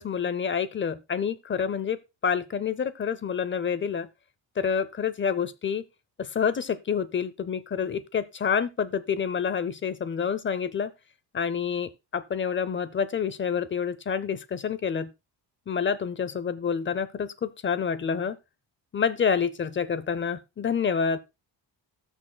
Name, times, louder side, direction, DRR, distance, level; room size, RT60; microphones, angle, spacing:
voice 1, 0.0-4.1 4.6-5.8 6.2-10.9 11.3-15.1 15.7-18.4 18.9-21.2, left 6 dB, 25° left, 0.5 m, -28 dB
19.0 x 6.3 x 2.2 m
cardioid pair, 165°, 45 cm